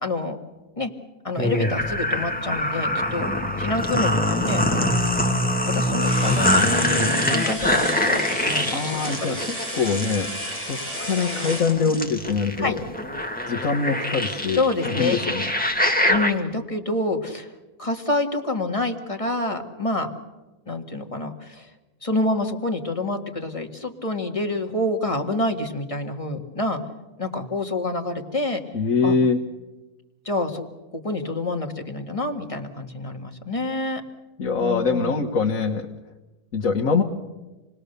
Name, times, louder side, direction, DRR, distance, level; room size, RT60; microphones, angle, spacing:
voice 1, 0.0-0.4 0.8-0.9 1.2-3.3 3.6-5.1 5.7-9.4 12.6-12.8 14.5-15.2 15.9-17.5 17.8-20.1 20.7-21.7 22.0-26.8 27.2-28.6 29.0-29.2 30.3-30.6 30.9-34.0 34.6-35.2, left 2 dB, 20° left, 4 dB, 1.9 m, -27 dB
sound 1, 1.4-16.3, left 1 dB, 5° left, 1.7 m, -24 dB
sound 2, 6.0-11.7, equal, 50° right, 6.5 m, -33 dB
voice 2, 8.7-9.4 9.7-10.3 10.6-12.8 13.5-15.5 28.7-29.4 34.4-35.8 36.5-37.0, left 5 dB, 65° left, 2 dB, 1.7 m, -23 dB
28.0 x 20.0 x 6.8 m, 1.1 s
omnidirectional pair, 1.6 m